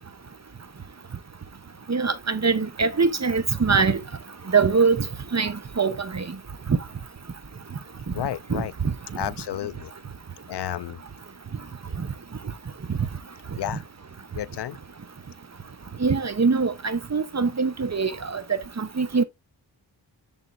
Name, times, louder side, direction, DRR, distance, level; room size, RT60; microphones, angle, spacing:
voice 1, 1.9-4.0 4.5-5.0 5.3-6.2 6.7-6.8 8.5-8.9 16.0-18.4 18.8-19.2, right 4 dB, 35° right, 0.9 m, -23 dB
voice 2, 8.1-8.7 9.2-9.9 10.5-11.0 13.6-13.8 14.3-14.8, left 11 dB, 65° left, 0.5 m, -31 dB
7.3 x 3.6 x 3.9 m
cardioid pair, 55°, 45 cm